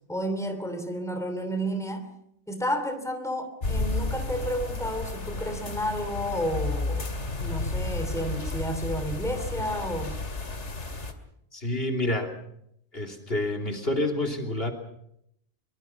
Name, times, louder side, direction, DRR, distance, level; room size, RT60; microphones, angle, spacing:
voice 1, 0.1-2.1 2.5-7.1 7.4-10.2, equal, 5° left, 7 dB, 3.0 m, -31 dB
sound 1, 3.6-11.1, left 2 dB, 80° left, 2.7 m, -32 dB
voice 2, 11.5-12.3 12.9-14.7, left 1 dB, 55° left, 2 dB, 3.3 m, -28 dB
24.0 x 24.0 x 5.9 m, 0.75 s
omnidirectional pair, 1.2 m